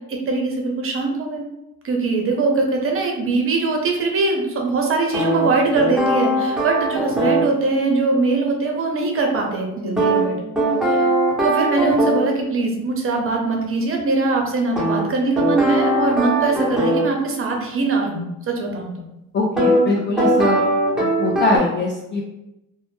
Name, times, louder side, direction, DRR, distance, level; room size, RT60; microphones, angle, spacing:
voice 1, 0.1-1.4 1.8-10.4 10.9-11.1 11.4-18.9, right 3 dB, 35° right, 1 dB, 0.7 m, -21 dB
sound 1, 5.1-7.5 10.0-12.3 14.8-17.1 19.6-19.8 20.2-21.6, right 1 dB, ahead, 0.8 m, -20 dB
voice 2, 19.3-20.6 21.0-22.2, left 3 dB, 30° left, -2 dB, 0.4 m, -22 dB
2.1 x 2.0 x 3.0 m, 0.90 s
supercardioid pair, 75°, 36 cm